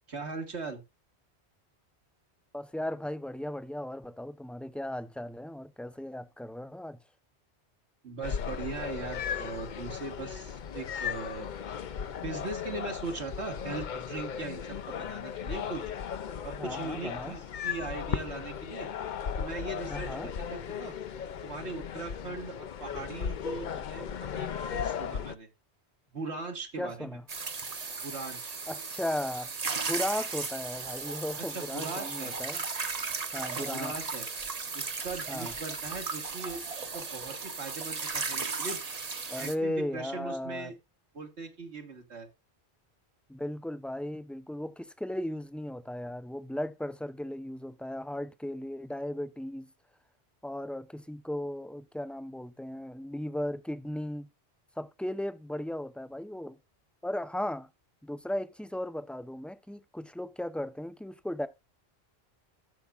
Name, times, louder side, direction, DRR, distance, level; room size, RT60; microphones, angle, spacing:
voice 1, 0.1-0.8 8.0-11.5 12.2-15.8 16.4-18.9 19.4-21.0 21.4-25.5 26.1-27.1 28.0-28.6 31.4-32.3 33.5-34.3 34.7-36.6 36.9-38.8 39.4-40.7 41.1-42.3, right 3 dB, 80° right, 2.0 m, -39 dB
voice 2, 2.5-7.0 16.6-17.3 19.9-20.3 26.8-27.2 28.7-29.5 29.8-32.6 33.3-33.9 35.3-35.5 39.3-40.7 43.3-49.7 50.4-54.3 54.8-56.6 57.0-57.7 58.0-61.5, left 1 dB, ahead, 0.4 m, -36 dB
sound 1, 8.2-25.4, left 7 dB, 50° left, 0.6 m, -36 dB
sound 2, 27.3-39.6, right 4 dB, 40° right, 1.0 m, -36 dB
15.0 x 7.0 x 2.4 m
omnidirectional pair, 1.1 m